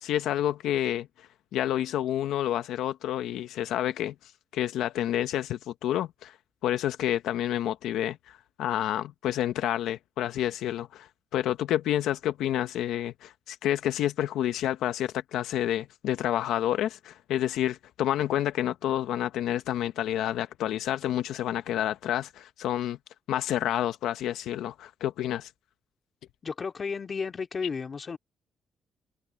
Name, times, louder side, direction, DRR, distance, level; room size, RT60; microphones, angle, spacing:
voice 1, 0.0-6.4 6.6-11.1 11.3-23.0 23.3-25.5, left 12 dB, 85° left, 0.9 m, -29 dB
voice 2, 26.4-28.2, left 5 dB, 40° left, 2.1 m, -33 dB
cardioid pair, 90°, 0 cm